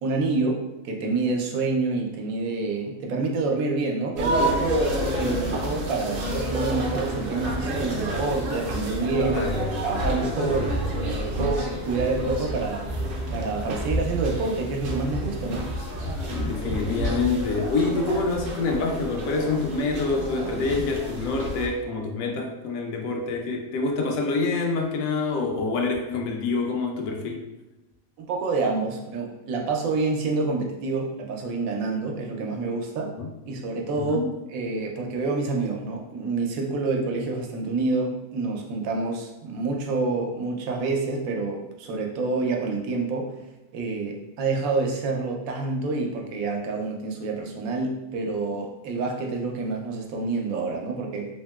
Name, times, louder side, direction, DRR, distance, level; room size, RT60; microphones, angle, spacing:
voice 1, 0.0-4.9 5.1-9.4 9.8-12.8 13.3-15.6 28.2-33.2 33.5-34.2 34.5-43.3 43.7-51.3, right 3 dB, 85° right, 1 dB, 1.0 m, -27 dB
sound 1, 4.2-21.7, right 1 dB, 60° right, 0.6 m, -29 dB
voice 2, 9.2-11.0 16.3-27.4 33.2-33.3 33.9-34.3, left 3 dB, 80° left, 2 dB, 1.0 m, -27 dB
3.0 x 2.8 x 2.2 m, 1.0 s
omnidirectional pair, 1.4 m